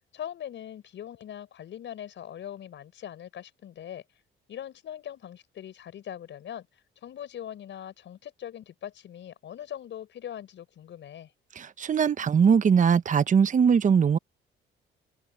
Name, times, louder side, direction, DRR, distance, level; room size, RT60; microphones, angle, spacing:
voice 1, 0.1-4.0 4.5-6.7 7.0-11.3, left 10 dB, 70° left, 6.4 m, -41 dB
voice 2, 11.5-14.2, right 6 dB, 40° right, 0.9 m, -21 dB
open air
cardioid pair, 90°, 20 cm